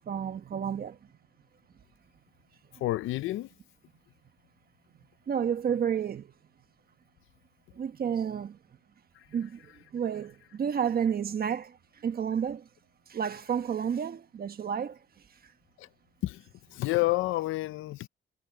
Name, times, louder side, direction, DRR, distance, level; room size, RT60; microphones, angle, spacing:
voice 1, 0.0-1.0 5.3-6.3 7.7-8.6 9.3-12.7 13.1-15.0 15.3-15.5, right 8 dB, 50° right, 1.3 m, -31 dB
voice 2, 2.8-3.5 9.2-9.3 15.8-15.9 16.2-16.4 16.7-18.1, left 18 dB, 85° left, 0.6 m, -29 dB
cardioid pair, 90°, 20 cm